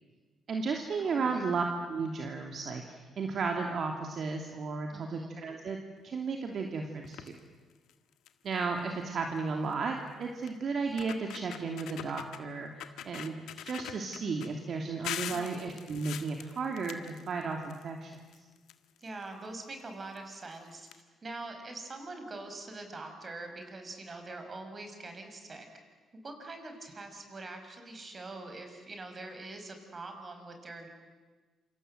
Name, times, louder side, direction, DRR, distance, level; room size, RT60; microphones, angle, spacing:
voice 1, 0.5-5.8 6.0-7.4 8.4-12.7 13.0-18.1, right 4 dB, 55° right, 3 dB, 2.8 m, -34 dB
voice 2, 1.0-1.6 4.9-5.3 15.3-15.7 19.0-25.7 26.1-30.9, right 2 dB, 35° right, 5 dB, 6.2 m, -44 dB
sound 1, 7.0-7.4 7.9-8.0 8.3-8.5 9.7-9.8 10.5-10.6 10.9-12.4 12.8-14.5 15.0-17.8 18.1-19.2 20.1-20.2 20.5-20.6 20.9-21.0, left 11 dB, 85° left, 1.7 m, -42 dB
27.5 x 27.0 x 8.0 m, 1.4 s
cardioid pair, 90°, 0 cm